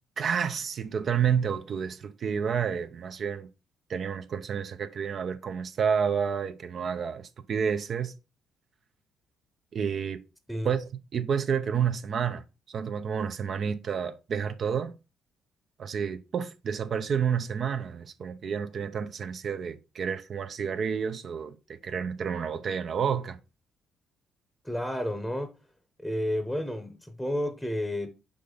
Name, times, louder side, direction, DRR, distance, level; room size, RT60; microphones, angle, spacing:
voice 1, 0.2-3.5 3.9-8.1 9.7-10.2 10.6-10.8 11.1-14.9 15.8-23.4, right 7 dB, 55° right, 0.6 m, -30 dB
voice 2, 24.6-25.5 26.0-28.1, left 1 dB, 5° left, 0.9 m, -31 dB
5.6 x 5.0 x 3.9 m
cardioid pair, 85°, 0 cm